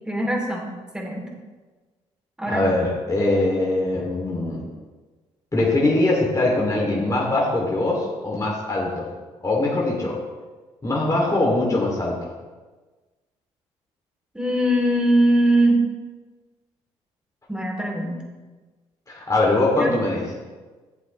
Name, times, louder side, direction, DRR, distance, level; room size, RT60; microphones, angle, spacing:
voice 1, 0.1-1.3 2.4-2.8 14.3-15.8 17.5-18.2 19.7-19.9, right 1 dB, 5° right, -1 dB, 2.9 m, -21 dB
voice 2, 2.5-4.6 5.5-9.1 9.4-10.2 10.8-12.2 19.1-20.2, left 2 dB, 25° left, -4 dB, 2.6 m, -22 dB
12.0 x 7.6 x 3.2 m, 1.3 s
hypercardioid pair, 55°, 14 cm